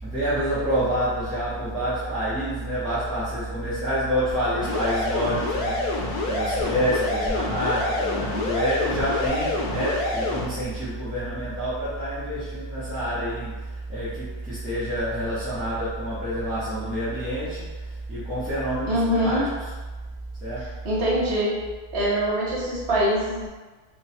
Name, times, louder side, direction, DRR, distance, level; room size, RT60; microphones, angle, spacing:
voice 1, 0.0-19.5 20.4-20.7, equal, ahead, -15 dB, 0.7 m, -27 dB
sound 1, 4.6-10.4, left 2 dB, 75° left, 1.1 m, -27 dB
voice 2, 18.9-19.4 20.8-21.6 21.9-23.5, equal, 45° right, -7 dB, 1.3 m, -23 dB
3.0 x 2.4 x 4.2 m, 1.3 s
omnidirectional pair, 1.7 m